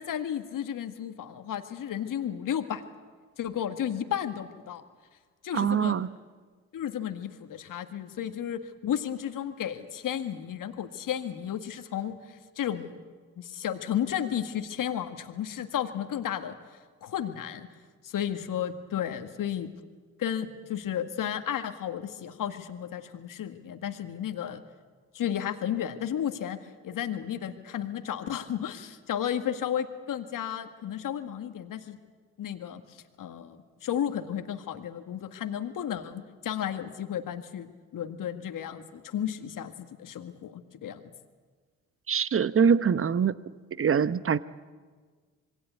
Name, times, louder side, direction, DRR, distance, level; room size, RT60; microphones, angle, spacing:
voice 1, 0.0-2.8 3.4-4.8 5.4-6.0 6.7-13.0 13.4-16.6 17.0-17.7 18.0-19.7 20.2-24.6 25.1-26.6 26.8-32.0 32.4-41.1, left 10 dB, 55° left, 8 dB, 1.9 m, -33 dB
voice 2, 5.5-6.1 42.1-43.4 43.8-44.4, right 7 dB, 35° right, 16 dB, 1.0 m, -24 dB
26.5 x 21.5 x 8.3 m, 1.5 s
hypercardioid pair, 45°, 39 cm